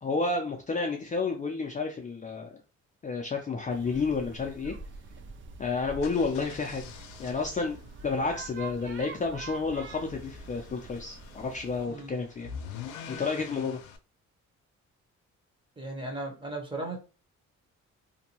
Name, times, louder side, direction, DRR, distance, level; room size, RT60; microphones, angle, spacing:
voice 1, 0.0-2.6 3.0-4.7 5.6-6.9 7.2-12.5 13.1-13.8, left 4 dB, 25° left, 2 dB, 0.4 m, -31 dB
sound 1, 3.7-11.9, right 4 dB, 40° right, 0.4 m, -45 dB
sound 2, 5.9-14.0, left 7 dB, 90° left, 0.5 m, -46 dB
voice 2, 15.8-17.0, right 2 dB, 15° right, 1 dB, 1.0 m, -36 dB
2.6 x 2.2 x 2.9 m, 0.33 s
cardioid pair, 90°, 30 cm